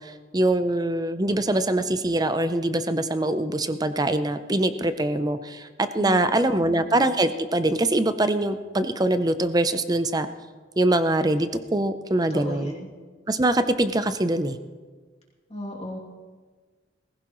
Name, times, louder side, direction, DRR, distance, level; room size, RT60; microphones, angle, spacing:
voice 1, 0.0-10.3 10.8-12.7 13.3-14.6, right 1 dB, 20° right, 10 dB, 0.6 m, -23 dB
voice 2, 6.0-6.8 12.3-12.7 15.5-16.0, left 1 dB, 35° left, -4 dB, 2.7 m, -35 dB
19.0 x 16.5 x 3.1 m, 1.4 s
head